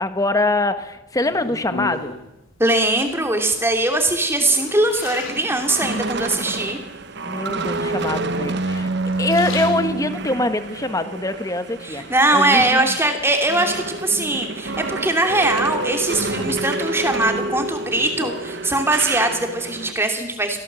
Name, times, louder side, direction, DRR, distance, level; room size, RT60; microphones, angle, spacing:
voice 1, 0.0-2.2 7.2-8.9 9.2-12.0 12.3-13.0 16.3-16.6, left 2 dB, 15° left, 10 dB, 1.2 m, -23 dB
sound 1, 1.2-2.3 3.1-3.6 4.1-6.1 6.6-7.2 8.0-8.7 9.0-10.3 10.8-12.0 12.4-14.1 15.4-16.0 16.5-19.1 19.3-19.9, left 4 dB, 75° left, 4.6 m, -37 dB
voice 2, 2.6-6.8 11.8-20.6, right 2 dB, 10° right, 4 dB, 2.8 m, -21 dB
sound 2, 4.3-12.7 13.1-19.9, right 2 dB, 55° right, 1.2 m, -28 dB
23.0 x 17.0 x 7.6 m, 0.93 s
head